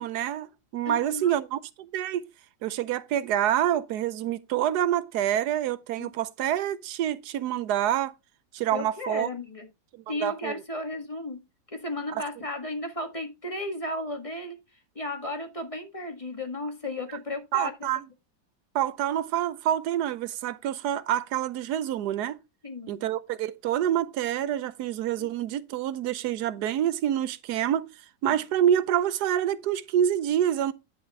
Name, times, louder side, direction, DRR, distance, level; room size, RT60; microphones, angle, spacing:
voice 1, 0.0-2.3 2.6-8.1 8.5-9.3 10.2-10.6 12.1-12.2 17.5-18.0 18.7-22.4 22.9-27.9 28.2-30.7, right 10 dB, 75° right, 1.1 m, -27 dB
voice 2, 0.8-1.4 6.0-6.1 8.7-9.7 10.1-11.4 11.7-14.6 14.9-17.9 22.6-23.0 25.2-25.3 28.3-28.4, left 1 dB, 20° left, 1.5 m, -34 dB
10.0 x 5.5 x 3.4 m
omnidirectional pair, 1.9 m